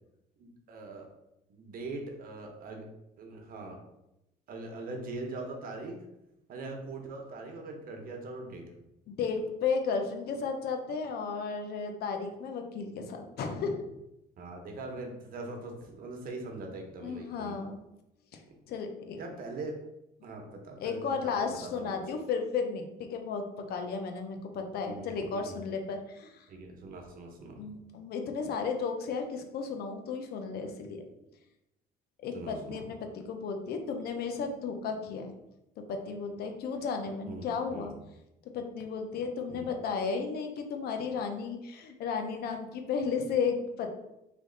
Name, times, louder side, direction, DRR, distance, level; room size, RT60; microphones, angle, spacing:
voice 1, 0.4-1.1 1.5-2.9 3.2-3.8 4.5-6.0 6.5-8.6 14.4-17.6 19.2-19.8 20.2-22.0 24.8-25.6 26.5-27.6 32.3-32.8 37.3-37.9 39.5-39.7, right 2 dB, 60° right, 3 dB, 0.9 m, -42 dB
voice 2, 9.1-13.8 17.0-17.8 18.3-18.4 18.7-19.2 20.8-22.8 23.1-26.4 27.6-31.0 32.2-33.0 33.3-35.3 35.9-37.9 38.5-43.9, left 5 dB, 65° left, 5 dB, 0.7 m, -34 dB
3.3 x 3.1 x 3.8 m, 0.88 s
cardioid pair, 110°, 17 cm